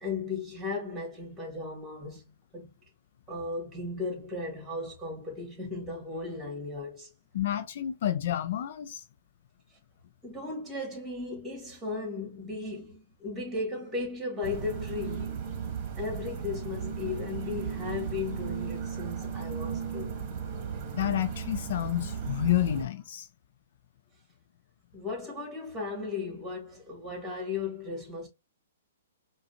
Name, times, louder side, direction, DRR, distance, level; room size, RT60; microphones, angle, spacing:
voice 1, 0.0-2.7 3.3-7.1 10.2-15.3 16.0-20.2 24.9-28.3, left 3 dB, 10° right, 2.0 m, -36 dB
voice 2, 7.3-9.0 20.9-23.3, left 12 dB, 55° left, 0.4 m, -29 dB
sound 1, 14.4-22.8, right 7 dB, 35° right, 1.2 m, -36 dB
4.9 x 2.3 x 2.6 m
hypercardioid pair, 125°, 0 cm